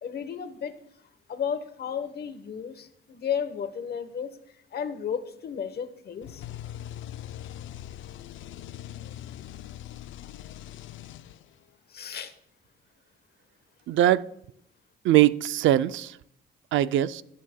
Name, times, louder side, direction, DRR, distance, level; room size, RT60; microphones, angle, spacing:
voice 1, 0.0-0.7 1.3-4.3 4.7-6.4 11.9-12.3, left 7 dB, 55° left, 1.0 m, -33 dB
sound 1, 6.2-11.7, left 11 dB, 75° left, 0.5 m, -41 dB
voice 2, 13.9-14.3 15.0-16.1 16.7-17.2, right 13 dB, 75° right, 0.4 m, -21 dB
18.5 x 7.4 x 2.2 m
cardioid pair, 90°, 20 cm